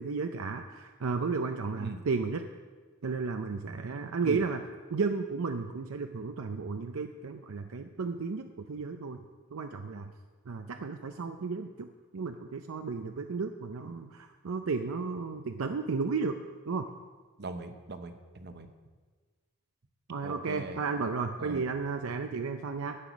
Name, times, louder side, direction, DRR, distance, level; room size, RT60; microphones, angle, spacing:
voice 1, 0.0-2.4 3.0-4.6 4.9-9.2 9.5-10.1 10.5-11.9 12.1-16.4 16.7-16.9 20.1-23.0, right 4 dB, 70° right, 6 dB, 0.6 m, -33 dB
voice 2, 17.4-18.7 20.2-20.8 21.4-21.7, right 2 dB, 50° right, 8 dB, 0.9 m, -40 dB
12.0 x 8.7 x 6.1 m, 1.4 s
head